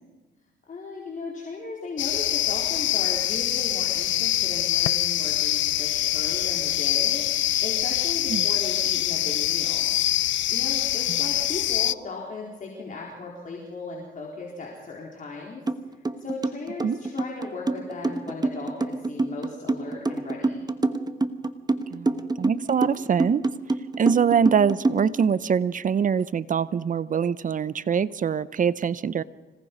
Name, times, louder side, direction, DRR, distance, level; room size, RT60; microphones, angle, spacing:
voice 1, 0.7-9.9 10.5-15.6 16.2-20.6, left 3 dB, 40° left, -2 dB, 4.2 m, -37 dB
sound 1, 2.0-11.9, left 14 dB, 70° left, 0.5 m, -24 dB
sound 2, 15.7-15.8 16.0-25.3, right 3 dB, 20° right, 1.2 m, -26 dB
voice 2, 21.9-23.4 24.0-29.2, right 7 dB, 40° right, 17 dB, 0.7 m, -24 dB
26.0 x 18.5 x 5.4 m, 1.3 s
cardioid pair, 90°, 20 cm